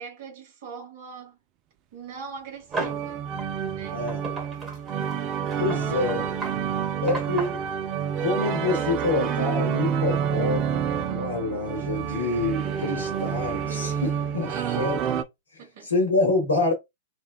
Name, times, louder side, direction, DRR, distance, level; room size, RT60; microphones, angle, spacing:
voice 1, 0.0-1.4 1.9-3.3 3.7-4.1 14.5-14.9 15.6-15.9, right 5 dB, 55° right, 1.3 m, -40 dB
sound 1, 2.7-3.1 3.4-3.5 4.1-7.7, right 3 dB, 20° right, 1.3 m, -34 dB
sound 2, 2.7-15.2, right 8 dB, 40° right, 0.5 m, -28 dB
voice 2, 3.9-4.2 5.6-6.4 7.0-7.6 8.2-15.0 15.5-16.7, left 2 dB, 85° left, 1.2 m, -27 dB
3.3 x 2.2 x 2.3 m
figure-of-eight pair, 100°, 0 cm